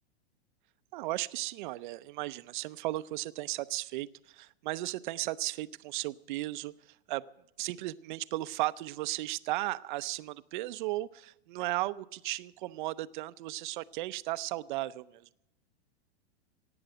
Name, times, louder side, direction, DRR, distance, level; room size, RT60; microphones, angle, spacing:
voice 1, 0.9-7.2 7.6-15.3, right 17 dB, 45° right, 16 dB, 0.6 m, -35 dB
17.0 x 8.8 x 7.9 m, 0.86 s
hypercardioid pair, 140°, 33 cm